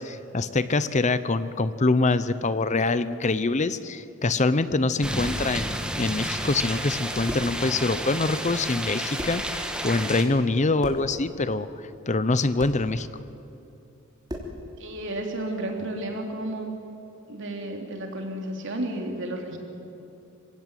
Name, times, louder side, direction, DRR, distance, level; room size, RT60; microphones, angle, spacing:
voice 1, 0.0-11.7 12.1-13.1, left 3 dB, 35° left, 14 dB, 0.7 m, -25 dB
sound 1, 5.0-10.2, right 1 dB, 5° right, 1.8 m, -31 dB
sound 2, 7.3-7.6 8.8-8.9 9.2-9.5 10.8-11.1 12.6-12.8 14.3-14.6, equal, 20° right, 3.3 m, -36 dB
voice 2, 14.8-16.7 17.3-19.6, right 1 dB, 60° right, 2 dB, 3.6 m, -32 dB
26.5 x 17.0 x 9.2 m, 2.8 s
head